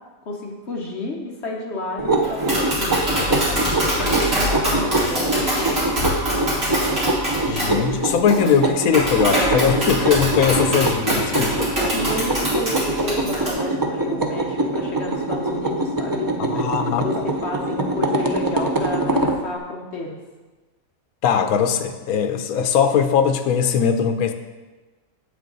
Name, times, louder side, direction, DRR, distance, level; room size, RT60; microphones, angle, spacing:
voice 1, 0.2-5.8 11.9-16.6 17.0-20.2, left 2 dB, 55° left, 1 dB, 1.2 m, -31 dB
sound 1, 2.0-19.4, right 2 dB, 30° right, 0.4 m, -24 dB
Tap, 2.2-13.5, equal, 65° right, 3.1 m, -24 dB
voice 2, 7.5-11.7 16.4-17.2 21.2-24.3, left 7 dB, 85° left, 7 dB, 1.1 m, -20 dB
8.2 x 8.1 x 4.0 m, 1.2 s
omnidirectional pair, 1.5 m